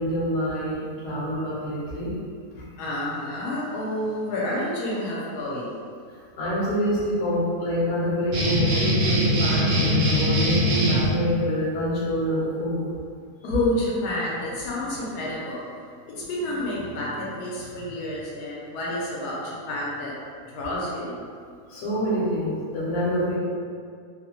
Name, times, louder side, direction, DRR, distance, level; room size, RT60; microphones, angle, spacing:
voice 1, 0.0-2.1 2.6-2.7 6.4-12.9 21.7-23.4, equal, 60° left, -6 dB, 0.9 m, -26 dB
voice 2, 2.8-5.8 13.4-15.6 16.1-20.1 20.5-21.3, left 1 dB, 80° left, -5 dB, 1.1 m, -29 dB
sound 1, 8.3-11.1, equal, 70° right, 0.9 m, -22 dB
2.8 x 2.0 x 2.8 m, 2.2 s
omnidirectional pair, 1.7 m